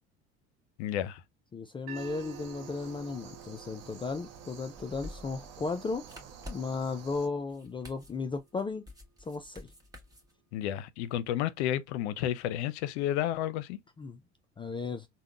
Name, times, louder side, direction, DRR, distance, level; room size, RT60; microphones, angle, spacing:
voice 1, 0.8-1.2 10.5-13.8, left 11 dB, 70° left, 0.5 m, -31 dB
voice 2, 1.5-6.0 6.5-8.8 9.2-9.7 14.0-14.2 14.6-15.1, left 4 dB, 15° left, 0.3 m, -35 dB
sound 1, 1.9-7.3, right 7 dB, 45° right, 0.8 m, -50 dB
sound 2, 1.9-8.0, right 9 dB, 70° right, 1.1 m, -52 dB
sound 3, 2.6-10.3, left 1 dB, 10° right, 1.3 m, -50 dB
3.5 x 2.1 x 2.3 m
hypercardioid pair, 75°, 34 cm